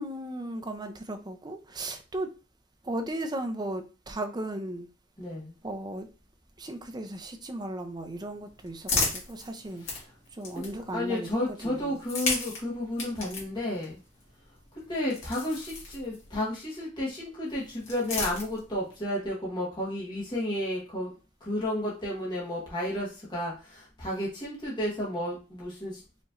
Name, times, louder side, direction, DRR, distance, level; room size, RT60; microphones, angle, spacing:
voice 1, 0.0-2.3 2.8-4.9 5.6-6.1 6.6-9.9 10.3-12.0, right 1 dB, 20° right, 0.5 m, -36 dB
voice 2, 5.2-5.5 9.8-10.0 10.5-14.0 14.9-21.1 21.4-26.0, left 1 dB, 20° left, 1.2 m, -32 dB
sound 1, 8.0-11.1 11.9-16.5 17.5-18.9, left 3 dB, 80° left, 1.7 m, -35 dB
5.1 x 3.0 x 2.5 m
head